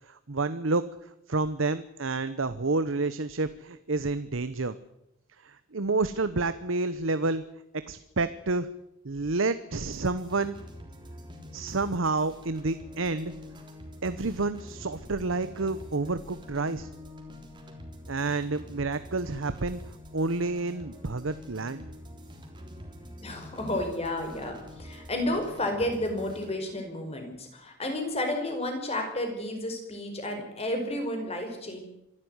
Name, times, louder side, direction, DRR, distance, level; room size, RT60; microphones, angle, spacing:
voice 1, 0.1-0.8 1.3-4.7 5.4-7.4 7.9-8.7 9.0-10.6 11.5-13.3 14.0-16.9 18.1-19.8 20.1-21.9, right 3 dB, 65° right, 13 dB, 0.9 m, -29 dB
sound 1, 9.9-26.5, left 1 dB, 20° right, 3.5 m, -46 dB
voice 2, 23.2-31.8, left 1 dB, 30° left, 4 dB, 5.1 m, -31 dB
26.0 x 12.0 x 9.6 m, 0.82 s
head